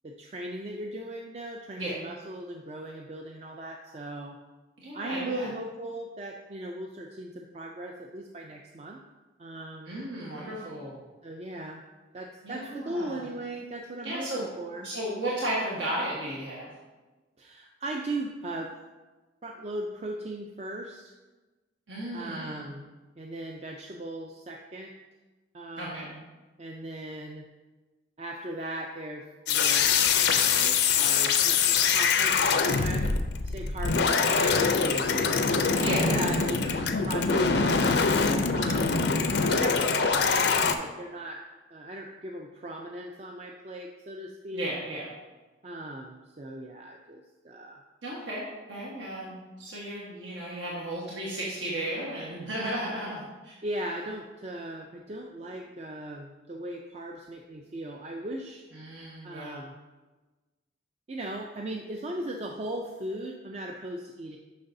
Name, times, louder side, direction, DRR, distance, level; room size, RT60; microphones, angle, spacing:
voice 1, 0.0-4.4 4.9-9.0 9.4-10.0 11.2-11.8 12.1-14.9 17.4-18.7 19.4-21.1 22.1-22.9 23.2-24.9 25.5-26.2 26.6-27.5 28.2-29.9 30.3-33.1 33.4-38.0 38.5-39.0 39.4-41.4 41.7-44.7 45.6-47.8 53.6-58.7 59.2-59.8 61.1-64.4, right 1 dB, 35° right, 1 dB, 0.4 m, -38 dB
voice 2, 4.8-5.5 9.8-11.0 12.4-13.2 14.0-14.5 14.8-16.7 21.9-22.7 25.8-26.1 35.8-36.1 44.5-45.1 48.0-53.5 58.7-59.6, right 1 dB, 80° right, -6 dB, 1.3 m, -34 dB
sound 1, 29.5-40.8, left 5 dB, 65° left, 0.5 m, -24 dB
9.3 x 5.9 x 2.6 m, 1.2 s
head